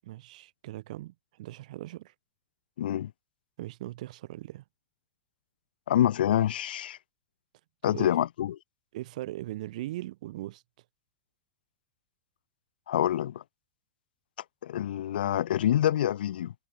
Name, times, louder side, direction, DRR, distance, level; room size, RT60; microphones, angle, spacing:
voice 1, 0.0-2.1 3.6-4.6 7.8-8.1 8.9-10.6, right 16 dB, 50° right, 8.0 m, -39 dB
voice 2, 2.8-3.1 5.9-7.0 7.8-8.6 12.9-13.4 14.6-16.5, left 11 dB, 90° left, 0.6 m, -26 dB
supercardioid pair, 175°, 5 cm